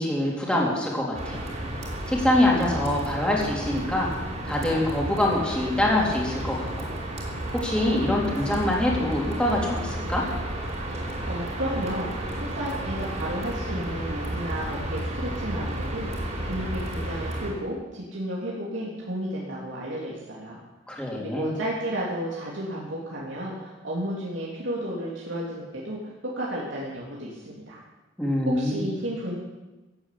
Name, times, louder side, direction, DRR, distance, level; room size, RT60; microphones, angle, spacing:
voice 1, 0.0-1.4 2.1-4.1 4.4-6.9 7.5-10.2 20.9-21.5 28.2-28.9, left 1 dB, 5° left, -3 dB, 3.7 m, -24 dB
sound 1, 1.1-17.5, right 1 dB, 40° right, 4.3 m, -32 dB
voice 2, 11.3-20.6 21.2-27.8 28.5-29.3, right 1 dB, 90° right, -5 dB, 3.3 m, -32 dB
15.5 x 9.0 x 8.5 m, 1.1 s
head